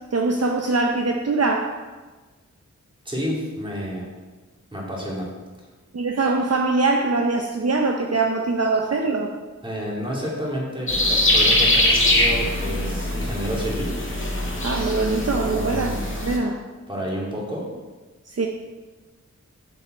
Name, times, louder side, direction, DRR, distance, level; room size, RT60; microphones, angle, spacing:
voice 1, 0.1-1.8 5.9-9.3 14.6-15.9 16.2-16.6 18.3-18.5, right 3 dB, 55° right, 2 dB, 0.7 m, -22 dB
voice 2, 3.0-4.1 4.7-5.3 9.6-13.9 15.5-16.0 16.9-17.7, equal, 15° right, -4 dB, 2.8 m, -30 dB
sound 1, 10.9-16.4, left 1 dB, 40° left, 1.9 m, -22 dB
8.0 x 7.1 x 4.5 m, 1.3 s
wide cardioid pair, 70°, 31 cm